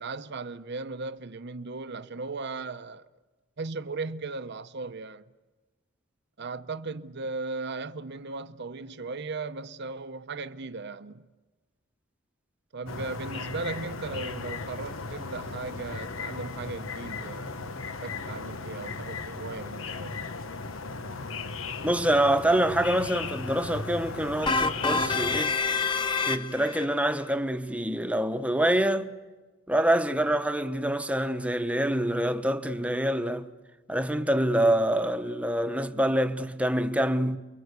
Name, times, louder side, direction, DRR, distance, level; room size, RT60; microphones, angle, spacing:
voice 1, 0.0-3.1 3.6-5.2 6.4-11.3 12.7-17.6 18.0-20.2, right 3 dB, 60° right, 0.8 m, -37 dB
sound 1, 12.9-25.4, left 4 dB, 85° left, 1.1 m, -36 dB
voice 2, 21.8-25.5 26.3-29.1 29.7-33.5 33.9-37.4, right 1 dB, 5° right, 1.1 m, -26 dB
sound 2, 24.5-26.8, left 4 dB, 25° left, 1.0 m, -27 dB
29.0 x 23.5 x 8.2 m
head